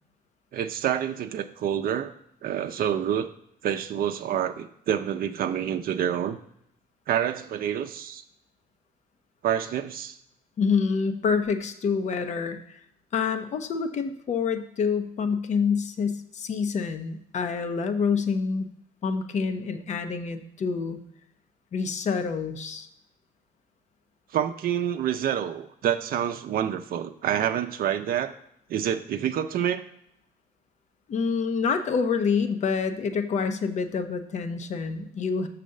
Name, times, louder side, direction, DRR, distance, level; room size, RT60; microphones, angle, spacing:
voice 1, 0.5-2.1 2.4-3.3 3.6-6.4 7.1-8.2 9.4-10.2 24.3-28.3 28.7-29.8, right 9 dB, 60° right, 6 dB, 0.6 m, -27 dB
voice 2, 10.6-12.8 13.1-18.7 19.0-21.0 21.7-22.9 31.1-35.5, left 5 dB, 45° left, 8 dB, 0.9 m, -27 dB
6.8 x 4.1 x 6.4 m, 0.74 s
cardioid pair, 110°, 17 cm